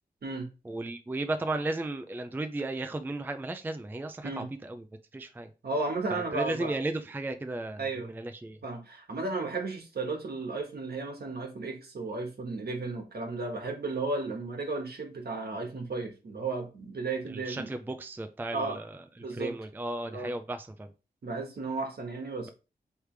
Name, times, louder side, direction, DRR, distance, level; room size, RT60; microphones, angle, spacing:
voice 1, 0.6-4.8 5.1-5.5 6.1-8.6 17.3-20.9, right 2 dB, 10° right, 0.4 m, -35 dB
voice 2, 5.6-6.8 7.8-8.1 8.6-17.7 18.5-18.8 19.2-19.5 20.1-20.3 21.2-22.5, right 3 dB, 70° right, 1.3 m, -34 dB
4.8 x 3.3 x 3.3 m
wide cardioid pair, 100°, 17 cm